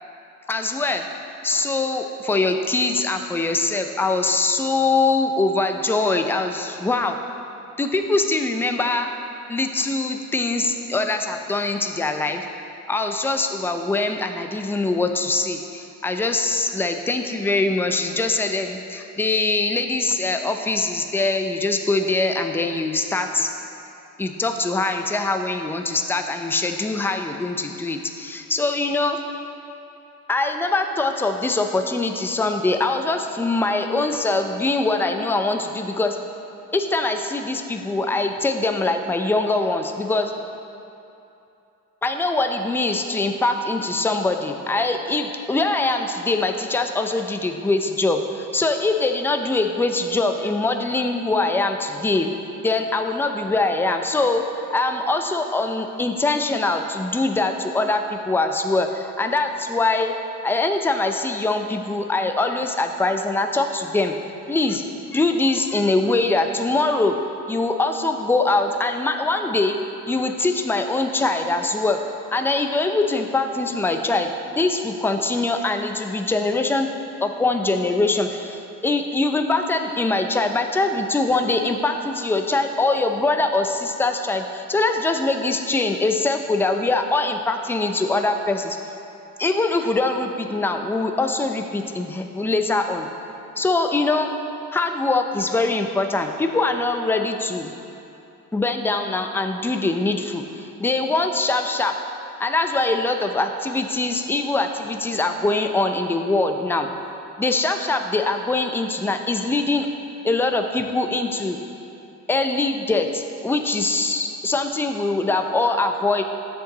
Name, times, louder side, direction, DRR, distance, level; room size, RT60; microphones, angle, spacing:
voice 1, 0.5-1.0 1.4-7.2 7.8-9.1 9.5-12.5 12.9-23.5 24.2-29.2 30.3-36.2 36.7-40.3 42.0-52.3 52.6-54.4 54.7-60.1 60.4-64.2 64.5-64.8 65.1-67.2 67.5-69.8 70.1-72.0 72.3-76.9 77.2-88.8 89.4-93.1 93.6-94.3 94.7-97.7 98.5-101.9 102.4-106.9 107.4-109.9 110.2-111.6 112.3-116.2, left 2 dB, 5° left, 5 dB, 0.4 m, -23 dB
7.9 x 6.4 x 4.0 m, 2.8 s
cardioid pair, 90°, 30 cm